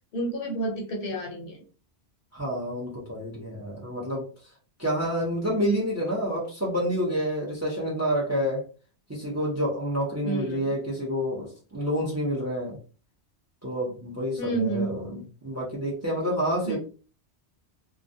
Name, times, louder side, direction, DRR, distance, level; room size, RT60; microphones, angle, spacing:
voice 1, 0.1-1.6 10.2-10.7 14.4-15.2 16.6-16.8, right 2 dB, 60° left, 0 dB, 0.7 m, -30 dB
voice 2, 2.3-4.3 4.8-8.6 9.1-12.8 13.6-16.8, equal, 20° right, -2 dB, 0.5 m, -28 dB
2.3 x 2.0 x 2.6 m, 0.37 s
omnidirectional pair, 1.1 m